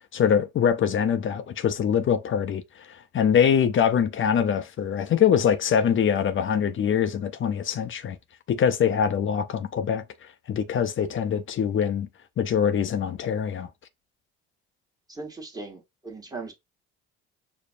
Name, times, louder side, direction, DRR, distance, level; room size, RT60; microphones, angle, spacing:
voice 1, 0.1-8.2 8.5-10.0 10.5-12.1 12.4-13.7, left 8 dB, 40° left, 0.5 m, -23 dB
voice 2, 15.1-16.5, right 3 dB, 10° right, 1.3 m, -38 dB
5.0 x 2.0 x 2.5 m
hypercardioid pair, 60°, 33 cm